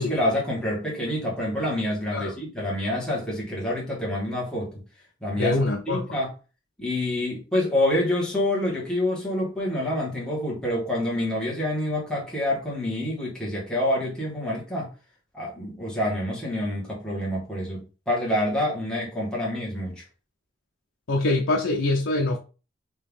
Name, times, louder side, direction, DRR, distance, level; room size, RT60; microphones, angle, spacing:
voice 1, 0.0-4.8 5.2-6.3 6.8-14.9 15.3-20.0, left 1 dB, 5° left, 1.6 m, -27 dB
voice 2, 5.4-6.0 21.1-22.4, left 2 dB, 90° left, 0.6 m, -24 dB
4.4 x 2.9 x 3.6 m
head